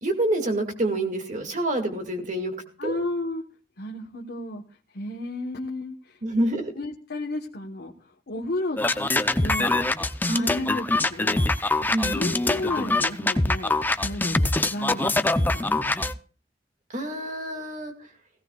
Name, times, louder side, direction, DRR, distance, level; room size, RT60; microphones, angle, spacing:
voice 1, 0.0-2.5 2.8-3.0 6.2-6.7 10.3-10.5 11.9-12.1 16.9-17.9, right 1 dB, 45° right, 4 dB, 2.1 m, -27 dB
voice 2, 2.8-3.5 3.8-4.6 4.9-6.2 6.8-8.8 9.4-9.9 10.3-11.6 12.0-16.1, left 1 dB, 65° left, 0 dB, 1.2 m, -33 dB
sound 1, 8.8-16.1, left 2 dB, 10° left, 0.5 m, -23 dB
17.0 x 17.0 x 2.3 m, 0.39 s
head